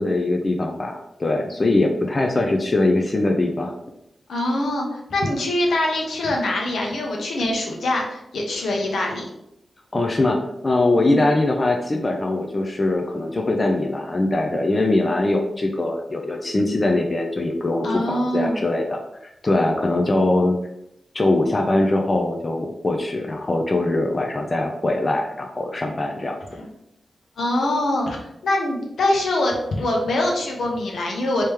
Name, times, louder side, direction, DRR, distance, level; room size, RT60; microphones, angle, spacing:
voice 1, 0.0-3.7 9.9-19.0 19.4-20.6 21.1-26.4, left 2 dB, 35° left, 3 dB, 0.5 m, -22 dB
voice 2, 4.3-9.2 11.0-11.2 17.8-18.6 26.6-26.7 27.4-31.5, left 1 dB, 80° left, 0 dB, 0.9 m, -23 dB
3.1 x 2.9 x 3.4 m, 0.82 s
cardioid pair, 60°, 0 cm